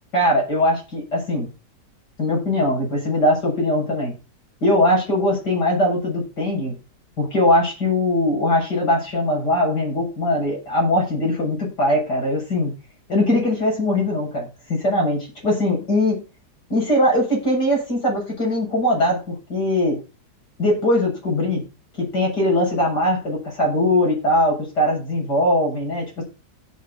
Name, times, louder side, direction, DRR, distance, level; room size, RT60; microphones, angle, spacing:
voice 1, 0.1-1.5 2.2-4.1 4.6-6.8 7.2-12.7 13.1-16.2 16.7-20.0 20.6-21.6 22.0-26.2, left 1 dB, 85° left, -2 dB, 8.2 m, -21 dB
16.0 x 6.5 x 4.3 m, 0.31 s
omnidirectional pair, 1.7 m